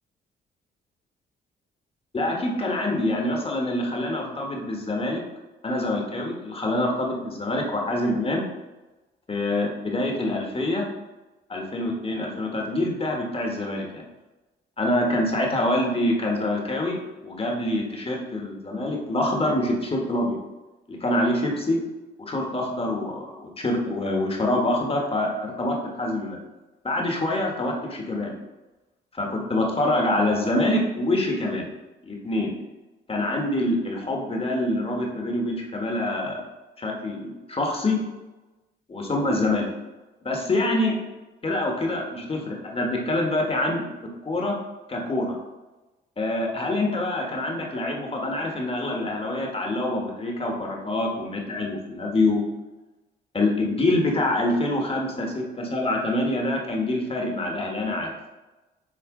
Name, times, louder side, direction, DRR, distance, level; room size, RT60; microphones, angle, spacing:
voice 1, 2.1-5.2 5.6-8.4 9.3-10.9 11.5-14.0 14.8-17.0 17.2-20.4 20.9-21.8 22.2-26.4 26.8-28.3 29.1-31.7 32.0-32.5 33.1-36.4 36.8-38.0 38.9-39.7 40.2-41.0 41.4-43.8 44.2-44.6 44.9-45.4 46.2-52.4 53.3-58.1, left 1 dB, 30° left, 0 dB, 1.5 m, -25 dB
7.7 x 3.2 x 3.9 m, 1.1 s
cardioid pair, 90°, 20 cm